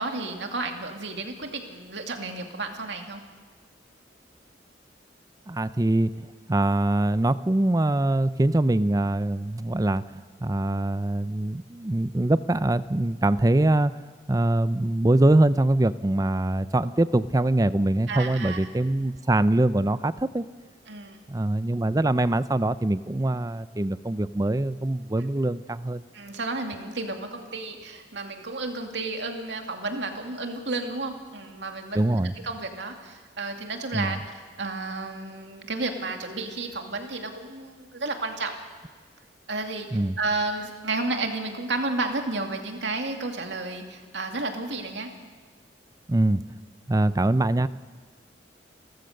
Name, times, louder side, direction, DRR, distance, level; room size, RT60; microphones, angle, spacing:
voice 1, 0.0-3.3 18.1-18.6 20.9-21.2 26.1-32.0 32.4-34.2 34.6-38.6 39.5-39.9 40.2-45.1, right 3 dB, 75° right, 4 dB, 2.4 m, -32 dB
voice 2, 5.5-10.0 10.4-13.9 14.3-20.4 21.3-26.0 31.9-32.3 33.9-34.2 39.9-40.2 46.1-46.4 46.9-47.7, right 1 dB, 20° right, 15 dB, 0.5 m, -23 dB
29.0 x 14.5 x 6.6 m, 1.5 s
head